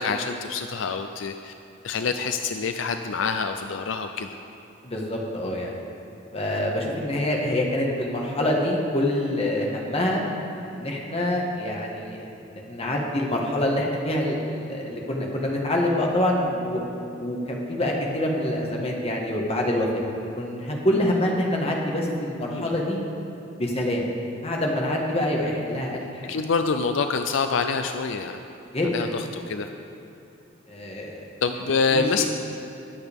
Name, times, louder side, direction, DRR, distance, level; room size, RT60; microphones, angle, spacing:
voice 1, 0.0-1.5 1.8-4.3 22.5-22.7 26.3-28.4 28.9-29.7 31.4-32.3, left 5 dB, 80° left, 7 dB, 0.5 m, -26 dB
voice 2, 4.8-5.7 6.3-10.2 10.7-16.8 17.2-23.0 23.6-24.1 24.4-26.4 28.7-29.1 30.7-31.3 31.9-32.3, left 1 dB, 30° left, -1 dB, 1.6 m, -26 dB
20.5 x 8.0 x 3.6 m, 2.9 s
head